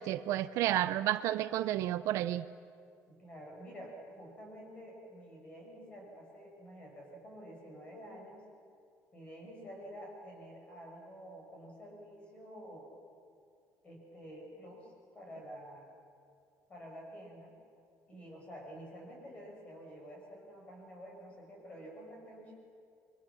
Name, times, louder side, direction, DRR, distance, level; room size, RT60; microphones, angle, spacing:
voice 1, 0.0-2.4, right 13 dB, 60° right, 13 dB, 0.6 m, -31 dB
voice 2, 3.1-8.5 9.1-12.9 13.8-15.9 16.7-17.5 18.1-22.5, equal, 25° left, -1 dB, 6.4 m, -49 dB
28.0 x 23.5 x 7.4 m, 2.4 s
cardioid pair, 175°, 6 cm